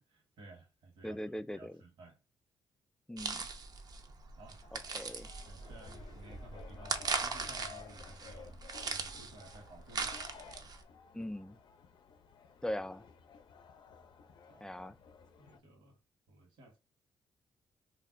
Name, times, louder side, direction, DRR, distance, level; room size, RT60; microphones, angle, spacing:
voice 1, 0.0-1.2 1.5-2.2 4.4-4.7 5.4-8.6 8.9-10.2 14.5-14.6 15.4-16.0 16.3-16.8, right 2 dB, 75° right, 1.3 m, -55 dB
voice 2, 1.0-1.8 3.1-3.5 4.7-5.3 11.1-11.6 12.6-13.1 14.6-15.0, left 1 dB, 5° left, 0.3 m, -40 dB
sound 1, 3.2-10.8, right 4 dB, 50° right, 0.5 m, -40 dB
sound 2, 4.6-15.6, left 6 dB, 65° left, 0.5 m, -55 dB
2.5 x 2.1 x 3.6 m
supercardioid pair, 65°, 8 cm